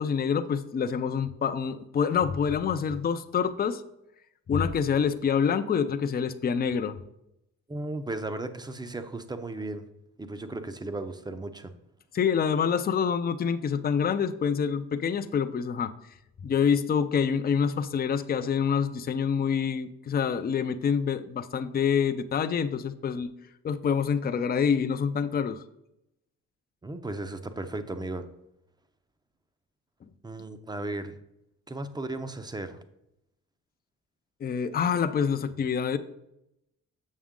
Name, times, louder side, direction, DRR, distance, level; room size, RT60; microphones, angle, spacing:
voice 1, 0.0-3.8 4.5-7.0 12.1-15.9 16.4-23.3 23.6-25.6 34.4-36.0, left 7 dB, 30° left, 10 dB, 0.5 m, -26 dB
voice 2, 7.7-9.9 10.2-11.7 26.8-28.2 30.2-31.2 31.7-32.8, right 2 dB, 15° right, 10 dB, 0.7 m, -35 dB
7.3 x 6.1 x 3.7 m, 0.84 s
cardioid pair, 90°, 30 cm